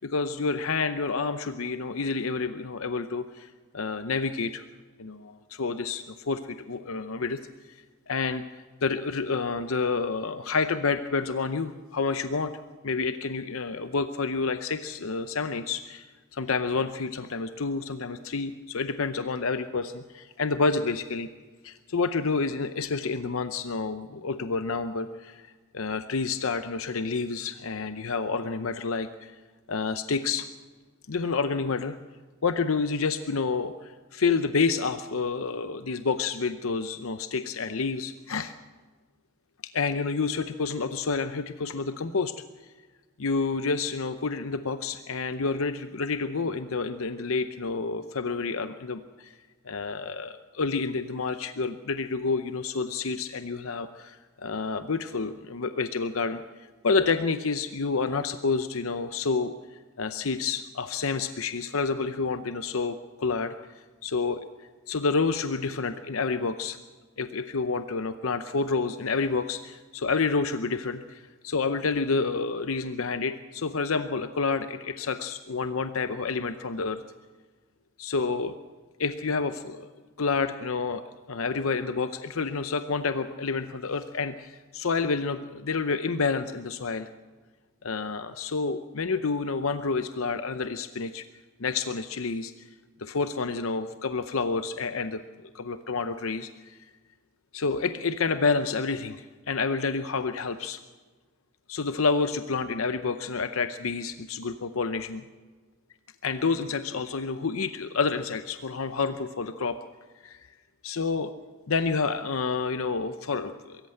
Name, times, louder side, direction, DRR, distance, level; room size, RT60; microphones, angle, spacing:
voice 1, 0.0-4.6 5.0-7.4 7.7-12.5 12.8-21.3 21.6-29.4 29.7-30.5 31.1-32.0 32.4-38.5 39.7-42.3 43.2-49.3 49.6-56.4 56.8-63.5 64.0-64.4 64.9-66.8 67.2-77.0 78.0-78.6 79.0-79.9 80.2-81.0 81.3-87.1 87.8-91.3 91.6-92.5 93.0-96.8 97.5-100.8 101.7-105.2 106.2-109.8 110.2-110.5 110.8-111.3 111.7-113.9, left 4 dB, 75° left, 10 dB, 0.7 m, -29 dB
23.0 x 14.0 x 7.9 m, 1.4 s
head